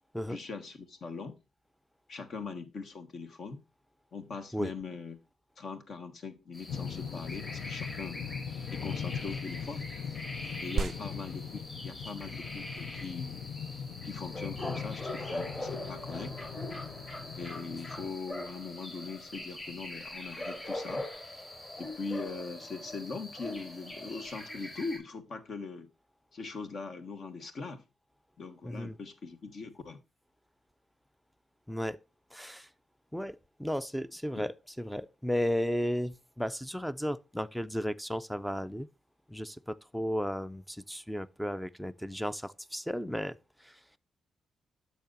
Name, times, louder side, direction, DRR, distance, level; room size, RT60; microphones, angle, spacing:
voice 1, 0.3-1.4 2.1-3.6 4.1-5.2 5.6-8.2 8.7-9.9 10.6-13.3 14.0-16.4 17.3-21.1 21.8-25.9 26.3-27.8 28.4-30.0 34.4-34.5, left 4 dB, 55° left, 1.3 m, -41 dB
sound 1, 6.5-25.0, left 1 dB, 30° left, 4.5 m, -42 dB
sound 2, 6.7-18.1, left 7 dB, 70° left, 0.6 m, -40 dB
sound 3, 19.0-20.7, right 6 dB, 60° right, 0.4 m, -44 dB
voice 2, 28.6-29.0 31.7-32.0 32.3-32.7 33.1-38.9 39.3-43.8, equal, ahead, 0.4 m, -34 dB
10.5 x 6.8 x 2.5 m
cardioid pair, 120°, 0 cm